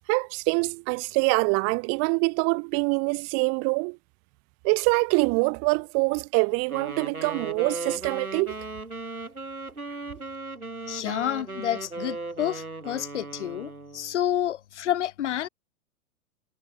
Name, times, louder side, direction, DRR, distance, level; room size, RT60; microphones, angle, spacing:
voice 1, 0.1-4.0 4.6-8.5, right 36 dB, 35° right, 3.0 m, -25 dB
Wind instrument woodwind instrument, 6.7-14.1, right 3 dB, 80° right, 6.8 m, -37 dB
voice 2, 10.9-15.5, left 11 dB, 55° left, 3.8 m, -29 dB
figure-of-eight pair, 105°, 43 cm